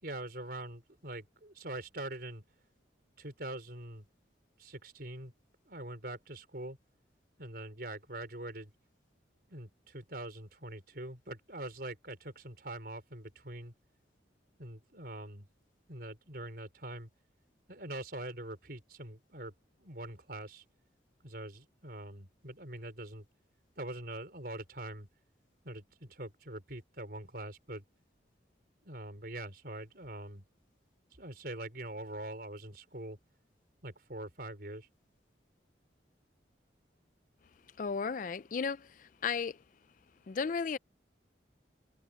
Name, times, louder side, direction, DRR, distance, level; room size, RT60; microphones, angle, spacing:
voice 1, 0.0-2.4 3.2-4.1 4.6-5.3 5.7-6.8 7.4-8.7 9.5-13.7 14.6-15.5 15.9-17.1 17.7-19.5 19.8-20.6 21.2-23.3 23.8-25.1 25.6-27.8 28.8-30.4 31.2-33.2 33.8-34.9, right 1 dB, 55° right, 5.3 m, -43 dB
voice 2, 37.8-39.6 40.3-40.8, left 5 dB, 45° left, 0.4 m, -34 dB
head